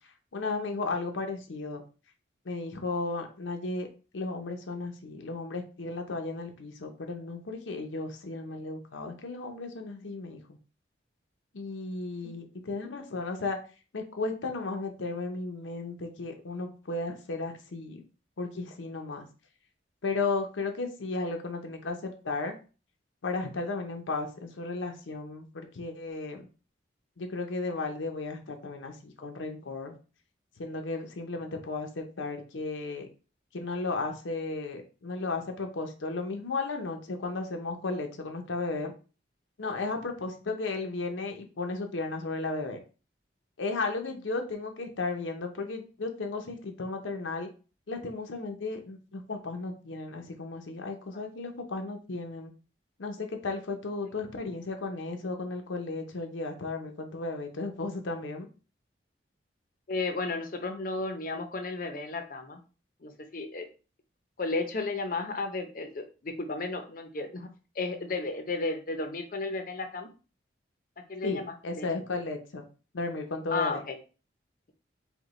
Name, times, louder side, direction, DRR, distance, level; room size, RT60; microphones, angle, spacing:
voice 1, 0.3-1.8 2.4-3.9 4.1-10.6 11.5-13.6 13.9-18.0 18.4-19.3 20.0-22.6 23.2-26.4 27.2-29.9 30.6-33.1 33.5-38.9 39.6-42.8 43.6-47.5 47.9-52.5 53.0-58.5 71.2-72.6 72.9-73.8, left 3 dB, 85° left, 4 dB, 0.7 m, -34 dB
voice 2, 59.9-62.6 63.0-63.7 64.4-67.5 67.8-70.1 71.1-71.9 73.5-74.0, left 3 dB, 45° left, 6 dB, 0.6 m, -33 dB
5.0 x 2.2 x 3.1 m, 0.35 s
head